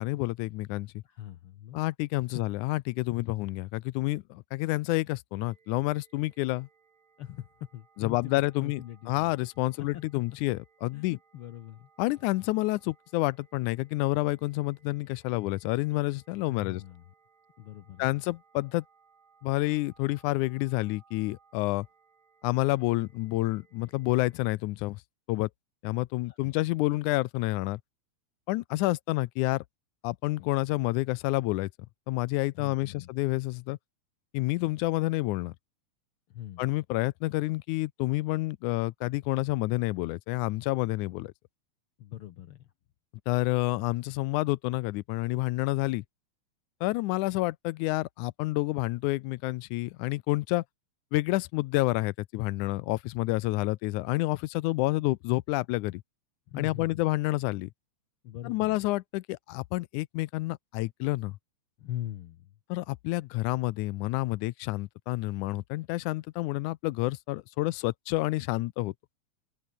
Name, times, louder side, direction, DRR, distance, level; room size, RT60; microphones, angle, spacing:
voice 1, 0.0-1.0 1.7-6.7 8.0-11.2 12.0-16.8 18.0-18.9 19.4-21.9 22.4-25.0 25.3-25.5 25.8-27.8 28.5-29.6 30.0-31.7 32.1-33.8 34.3-35.5 36.6-41.3 43.3-46.0 46.8-50.6 51.1-56.0 56.6-57.7 58.5-61.4 62.7-68.9, left 20 dB, 85° left, 2.1 m, -29 dB
voice 2, 1.0-1.8 7.2-9.4 9.9-10.0 10.9-11.9 16.5-17.0 17.6-18.2 26.2-26.5 32.6-33.1 36.3-36.6 42.0-42.7 56.5-57.0 58.2-58.8 61.8-62.6, left 12 dB, 70° left, 1.4 m, -42 dB
sound 1, 5.4-24.6, right 6 dB, 65° right, 4.7 m, -65 dB
open air
omnidirectional pair, 3.4 m